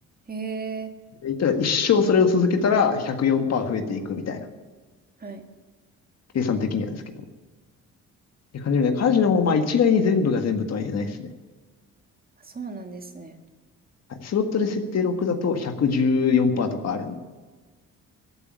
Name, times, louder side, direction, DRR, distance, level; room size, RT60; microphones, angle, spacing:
voice 1, 0.3-0.9 5.2-5.5 12.4-13.4, right 5 dB, 30° right, 5 dB, 2.0 m, -35 dB
voice 2, 1.2-4.4 6.3-7.0 8.6-11.2 14.2-17.1, left 5 dB, 60° left, 6 dB, 1.7 m, -22 dB
14.5 x 8.6 x 9.7 m, 1.3 s
cardioid pair, 90°, 30 cm